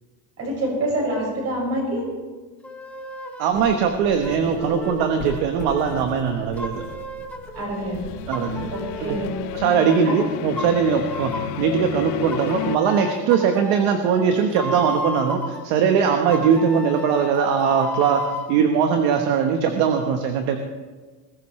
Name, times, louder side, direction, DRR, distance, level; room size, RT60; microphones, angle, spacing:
voice 1, 0.4-2.1 7.5-8.0 8.7-9.3 10.0-10.2, right 1 dB, 30° right, -2 dB, 6.3 m, -26 dB
sound 1, 2.6-3.6 4.2-7.6 8.3-10.2 10.6-11.6 12.3-15.6 16.3-18.5, left 1 dB, 5° left, 0.5 m, -34 dB
voice 2, 3.4-6.8 8.3-8.7 9.0-9.2 9.5-20.6, right 7 dB, 50° right, 5 dB, 1.3 m, -21 dB
sound 2, 3.5-9.5, left 1 dB, 40° left, 3.9 m, -40 dB
sound 3, 7.7-12.8, left 17 dB, 80° left, 0.7 m, -31 dB
20.5 x 16.0 x 3.2 m, 1.4 s
cardioid pair, 165°, 47 cm